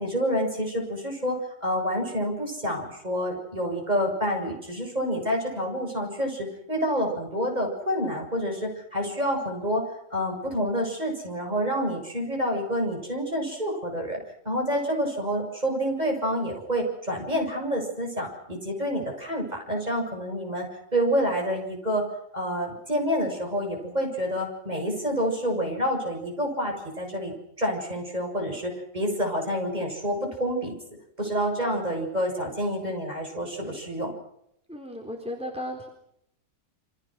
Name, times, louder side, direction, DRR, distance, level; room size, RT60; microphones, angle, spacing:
voice 1, 0.0-9.8 10.1-14.2 14.5-20.7 20.9-22.1 22.3-30.8 31.2-34.1, equal, 30° right, 2 dB, 7.1 m, -28 dB
voice 2, 34.7-35.9, left 1 dB, 5° right, 1 dB, 4.1 m, -35 dB
29.0 x 25.5 x 6.3 m, 0.77 s
omnidirectional pair, 1.4 m